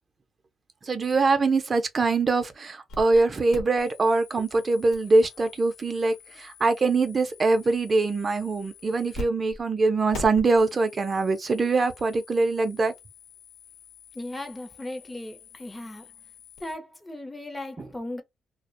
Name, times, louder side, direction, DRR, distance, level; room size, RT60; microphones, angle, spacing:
voice 1, 0.8-12.9 17.8-17.9, right 3 dB, 35° right, 0.4 m, -23 dB
sound 1, 2.9-3.2 3.5-9.3 9.5-9.6 10.1-16.7, left 2 dB, 80° left, 1.0 m, -44 dB
voice 2, 14.1-16.1 16.6-18.2, left 1 dB, 15° left, 0.6 m, -37 dB
2.3 x 2.1 x 2.5 m
cardioid pair, 90°, 0 cm